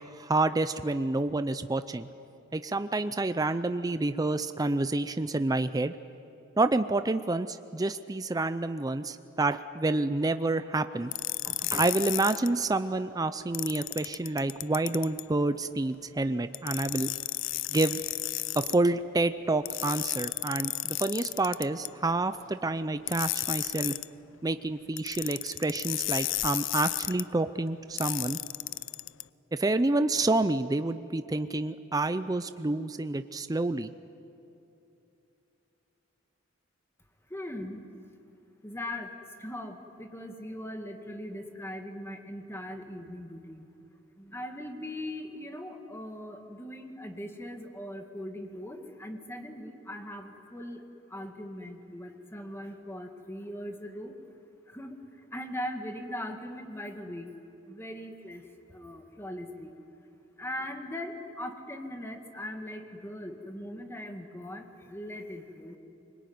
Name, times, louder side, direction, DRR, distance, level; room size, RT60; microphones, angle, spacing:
voice 1, 0.0-2.1 2.5-6.0 6.6-11.1 11.5-17.1 17.7-18.0 18.6-24.0 24.4-28.4 29.5-33.9, right 2 dB, 20° right, 11 dB, 0.5 m, -28 dB
sound 1, 11.1-12.5 13.5-15.2 16.5-18.8 19.7-21.9 23.1-24.1 25.0-27.2 28.0-29.2, left 17 dB, 70° left, 0.5 m, -33 dB
voice 2, 37.3-37.8 38.6-39.1 39.4-43.7 44.2-50.8 51.1-54.1 54.7-57.3 57.7-59.8 60.4-65.8, left 1 dB, 15° left, 4 dB, 1.9 m, -40 dB
24.5 x 22.0 x 9.4 m, 2.8 s
head